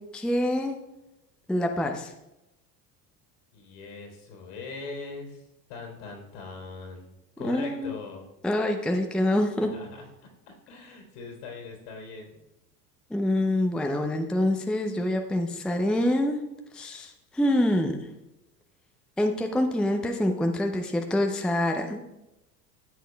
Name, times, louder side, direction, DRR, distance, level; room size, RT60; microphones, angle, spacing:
voice 1, 0.1-0.7 1.5-2.1 7.4-7.9 8.4-9.7 13.1-16.4 16.7-18.0 19.2-22.0, left 1 dB, ahead, 4 dB, 0.6 m, -26 dB
voice 2, 3.5-7.1 7.4-8.3 9.6-12.4, left 4 dB, 65° left, 1 dB, 3.4 m, -41 dB
13.0 x 8.2 x 2.3 m, 0.93 s
figure-of-eight pair, 70°, 49 cm